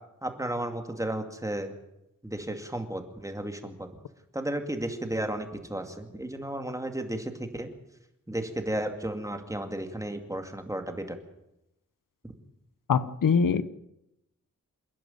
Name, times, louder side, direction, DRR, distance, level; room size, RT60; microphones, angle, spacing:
voice 1, 0.2-1.7 2.2-3.9 4.3-7.7 8.3-11.2, right 1 dB, 10° right, 6 dB, 2.4 m, -33 dB
voice 2, 12.9-13.6, left 6 dB, 85° left, 15 dB, 1.0 m, -23 dB
27.5 x 11.0 x 9.3 m, 0.88 s
wide cardioid pair, 110°, 32 cm